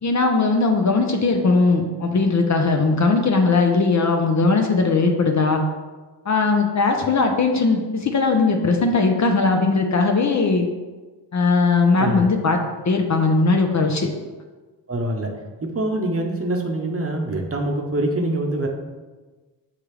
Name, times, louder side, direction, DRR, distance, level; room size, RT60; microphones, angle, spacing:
voice 1, 0.0-5.6 6.3-10.7 11.3-12.6 12.9-14.1, left 3 dB, 40° left, 3 dB, 0.6 m, -19 dB
voice 2, 14.9-15.3 15.6-18.7, right 1 dB, 30° right, 1 dB, 0.8 m, -24 dB
6.5 x 2.4 x 3.2 m, 1.3 s
supercardioid pair, 45°, 45 cm